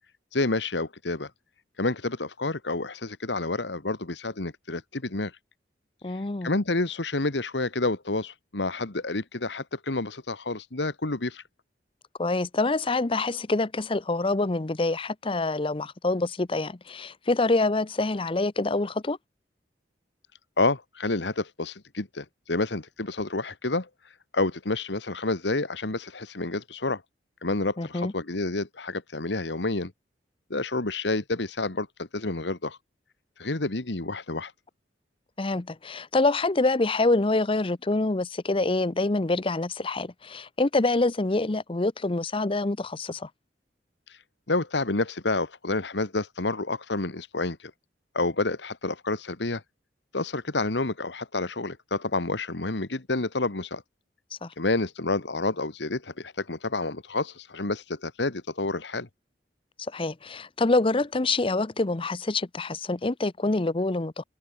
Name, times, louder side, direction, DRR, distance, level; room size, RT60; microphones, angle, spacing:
voice 1, 0.3-1.3 1.8-5.4 6.1-11.4 20.6-27.0 27.4-29.9 30.5-32.8 33.4-34.5 44.1-44.2 44.5-47.7 48.1-49.6 50.1-53.8 54.6-59.1, left 2 dB, 80° left, 1.7 m, -29 dB
voice 2, 6.0-6.5 12.2-19.2 27.8-28.1 35.4-43.3 54.4-54.5 59.9-64.2, left 2 dB, 30° left, 0.7 m, -26 dB
head